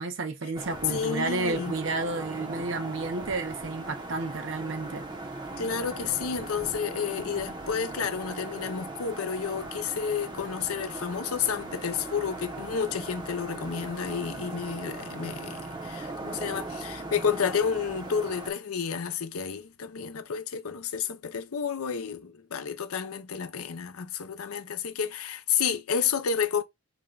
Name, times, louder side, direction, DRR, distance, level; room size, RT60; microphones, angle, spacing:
voice 1, 0.0-5.0, right 3 dB, 60° right, 0.7 m, -31 dB
sound 1, 0.5-18.5, right 2 dB, 20° right, 0.7 m, -39 dB
voice 2, 0.9-1.7 5.6-26.6, left 6 dB, 85° left, 0.6 m, -31 dB
4.9 x 2.2 x 3.8 m
head